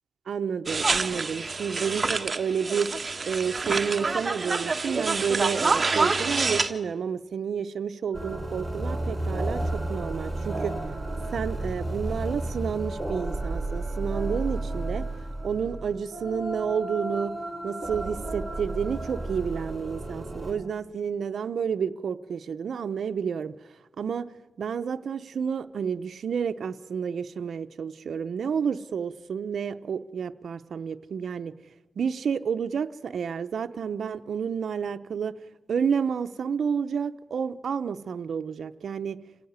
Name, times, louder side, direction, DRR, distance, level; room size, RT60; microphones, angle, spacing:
voice 1, 0.3-2.9 3.2-10.7 11.3-15.0 15.4-17.3 17.6-23.6 24.0-24.3 24.6-31.5 32.0-35.3 35.7-39.2, right 7 dB, 90° right, 9 dB, 0.8 m, -30 dB
sound 1, 0.7-6.7, right 3 dB, 40° right, 1.5 m, -27 dB
sound 2, 8.1-20.5, right 2 dB, 10° right, 5.1 m, -32 dB
26.5 x 16.5 x 9.6 m, 1.1 s
cardioid pair, 80°, 0 cm